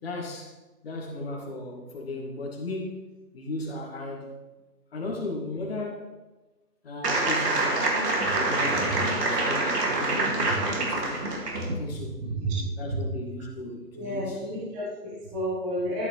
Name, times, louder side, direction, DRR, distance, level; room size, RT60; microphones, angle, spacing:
voice 1, 0.0-0.6 0.8-3.1 3.3-4.3 4.9-6.2 6.8-7.9 8.3-11.2 11.6-12.2 12.8-14.4, left 2 dB, 40° left, 0 dB, 1.9 m, -36 dB
sound 1, 7.0-11.7, right 2 dB, 75° right, 2.5 m, -26 dB
voice 2, 12.4-13.0 13.9-16.1, right 1 dB, 10° right, -8 dB, 1.2 m, -31 dB
13.0 x 6.2 x 3.2 m, 1.2 s
figure-of-eight pair, 155°, 48 cm